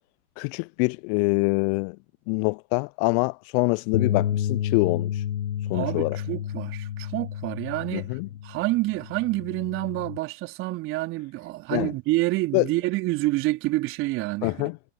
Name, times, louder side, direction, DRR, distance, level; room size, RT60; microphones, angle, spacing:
voice 1, 0.4-2.0 2.3-5.2 5.7-6.2 7.9-8.3 11.7-11.9 12.5-12.7 14.4-14.8, left 39 dB, 25° left, 0.3 m, -25 dB
Bass guitar, 3.9-10.2, left 10 dB, 75° left, 0.8 m, -30 dB
voice 2, 5.7-8.1 8.4-14.7, right 19 dB, 35° right, 3.7 m, -28 dB
figure-of-eight pair, 100°, 34 cm